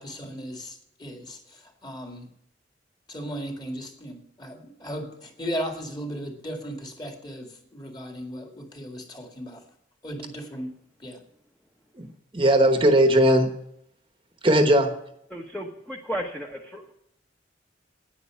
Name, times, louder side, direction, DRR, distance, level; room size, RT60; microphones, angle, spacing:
voice 1, 0.0-2.3 3.1-9.6 10.0-10.7 11.0-11.2, equal, 20° left, 4 dB, 2.0 m, -36 dB
voice 2, 12.0-13.5 14.4-14.9, right 1 dB, 25° right, 7 dB, 1.1 m, -19 dB
voice 3, 15.3-16.9, equal, 5° left, 1 dB, 1.0 m, -34 dB
10.0 x 9.4 x 8.4 m, 0.75 s
head